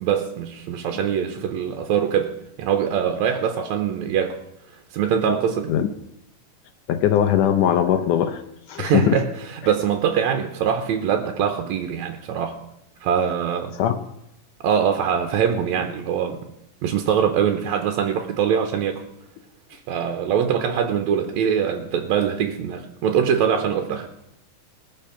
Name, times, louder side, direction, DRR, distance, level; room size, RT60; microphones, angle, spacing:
voice 1, 0.0-2.3 2.6-4.4 4.9-5.7 8.8-12.6 13.0-13.7 14.6-16.4 16.8-19.0 19.7-24.1, right 8 dB, 70° right, 5 dB, 1.9 m, -23 dB
voice 2, 6.9-8.4 8.7-9.2 13.7-14.0, left 10 dB, 75° left, 7 dB, 2.1 m, -20 dB
20.5 x 6.9 x 5.7 m, 0.81 s
omnidirectional pair, 3.8 m